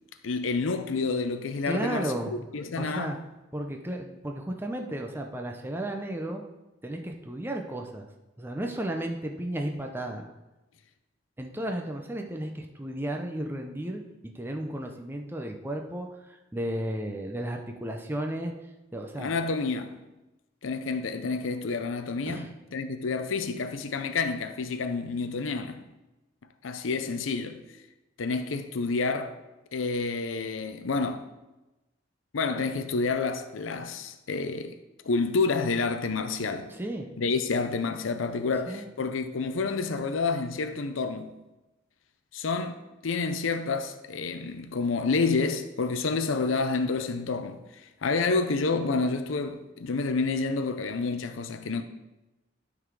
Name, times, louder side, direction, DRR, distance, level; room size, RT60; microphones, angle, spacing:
voice 1, 0.2-3.2 19.2-20.0 20.6-22.4 22.7-25.8 26.6-27.6 28.2-29.3 29.7-31.3 32.3-34.8 35.0-36.7 37.2-41.4 42.3-47.6 48.0-51.8, left 4 dB, 90° left, 0.6 m, -29 dB
voice 2, 1.7-3.2 3.5-6.4 6.8-8.1 8.4-10.3 11.4-18.5 18.9-19.3 22.3-22.5 36.7-37.1 38.7-38.9, right 1 dB, 10° right, 0.6 m, -34 dB
12.0 x 4.0 x 4.7 m
head